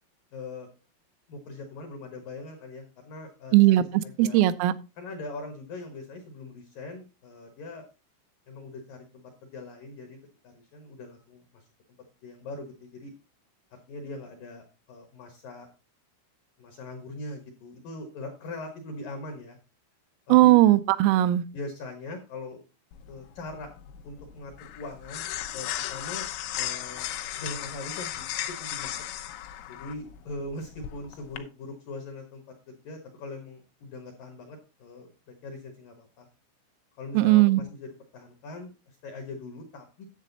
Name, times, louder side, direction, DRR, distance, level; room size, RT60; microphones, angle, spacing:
voice 1, 0.3-0.7 1.3-4.4 5.0-7.9 8.5-10.2 10.4-11.6 12.2-13.1 13.7-15.7 16.6-19.6 20.3-20.5 21.5-22.6 23.1-23.7 24.0-26.3 26.5-27.1 27.4-28.3 28.6-29.0 29.7-35.1 35.4-36.3 37.0-40.1, left 2 dB, 70° left, 4 dB, 2.1 m, -41 dB
voice 2, 3.5-3.8 4.2-4.7 20.3-21.4 37.1-37.6, right 15 dB, 90° right, 13 dB, 3.3 m, -18 dB
sound 1, 22.9-31.4, left 13 dB, 90° left, 3.6 m, -36 dB
10.5 x 7.6 x 4.0 m, 0.30 s
omnidirectional pair, 5.8 m